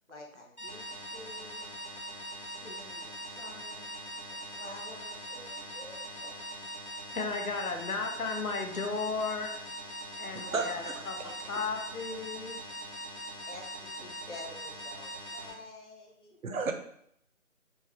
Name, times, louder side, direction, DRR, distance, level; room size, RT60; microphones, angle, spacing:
voice 1, 0.1-1.7 2.4-3.9 4.3-6.4 13.5-16.4, left 2 dB, 55° left, -1 dB, 1.0 m, -49 dB
sound 1, 0.6-15.5, equal, 30° left, 0.8 m, -42 dB
voice 2, 7.1-9.5 9.8-12.6, left 4 dB, 85° left, 3 dB, 0.9 m, -35 dB
voice 3, 10.5-11.3 16.4-16.7, right 4 dB, 75° right, 5 dB, 0.7 m, -33 dB
4.5 x 2.1 x 3.2 m, 0.70 s
figure-of-eight pair, 175°, 42 cm